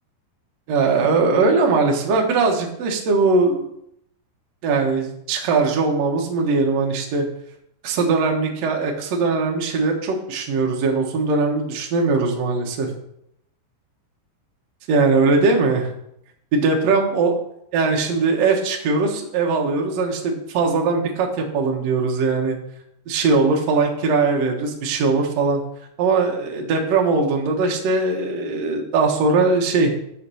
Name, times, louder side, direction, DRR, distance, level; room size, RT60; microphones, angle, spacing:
voice 1, 0.7-3.7 4.6-7.3 7.8-12.9 14.9-15.9 16.5-17.3 17.7-22.6 23.1-25.6 26.0-29.9, right 4 dB, 80° right, 1 dB, 1.5 m, -20 dB
7.4 x 5.8 x 6.2 m, 0.75 s
omnidirectional pair, 5.1 m